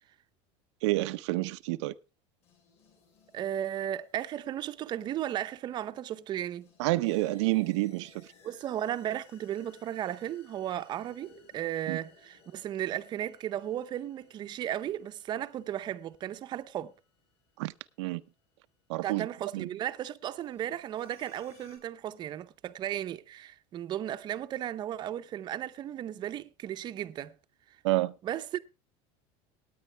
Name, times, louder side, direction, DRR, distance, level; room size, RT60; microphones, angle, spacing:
voice 1, 0.8-1.9 6.8-8.3 11.9-12.0 17.6-17.7 18.0-18.2 18.9-19.3 19.5-19.7 27.8-28.1, right 19 dB, 85° right, 0.6 m, -28 dB
sound 1, 2.4-18.5 20.4-21.8, left 4 dB, 45° left, 7.6 m, -62 dB
voice 2, 3.3-6.7 8.4-16.9 19.0-27.3 28.2-28.6, right 11 dB, 30° right, 0.7 m, -35 dB
18.5 x 9.3 x 3.3 m
cardioid pair, 150°, 15 cm